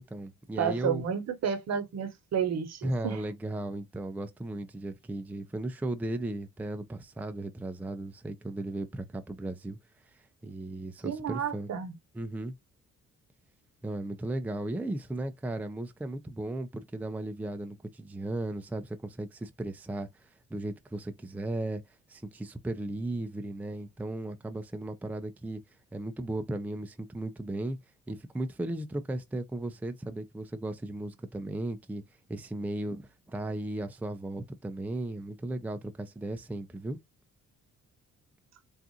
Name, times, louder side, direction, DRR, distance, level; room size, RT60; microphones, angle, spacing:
voice 1, 0.0-1.1 2.8-9.8 10.1-11.7 12.1-12.5 13.8-21.8 22.1-25.6 25.9-27.8 28.1-32.0 32.3-37.0, right 2 dB, 5° right, 0.5 m, -36 dB
voice 2, 0.6-3.2 11.0-11.9, right 7 dB, 60° right, 1.0 m, -31 dB
3.7 x 2.5 x 2.7 m
cardioid pair, 90°, 30 cm